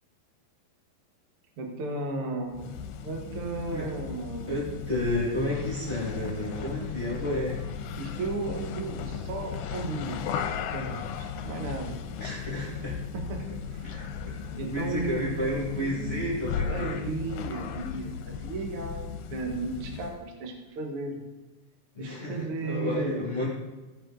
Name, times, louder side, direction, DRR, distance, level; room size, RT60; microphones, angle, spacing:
voice 1, 1.6-4.6 7.1-7.2 8.0-10.4 10.7-12.0 13.1-13.9 14.3-16.3 16.7-19.0 19.3-21.2 22.0-23.1, right 3 dB, 85° right, 2 dB, 1.2 m, -35 dB
sound 1, 2.5-20.2, left 7 dB, 80° left, 2.5 m, -36 dB
voice 2, 4.5-7.7 12.2-13.0 13.8-14.1 14.4-17.0 21.9-23.5, left 1 dB, 30° left, -6 dB, 1.0 m, -31 dB
17.0 x 5.9 x 3.8 m, 1.2 s
omnidirectional pair, 5.0 m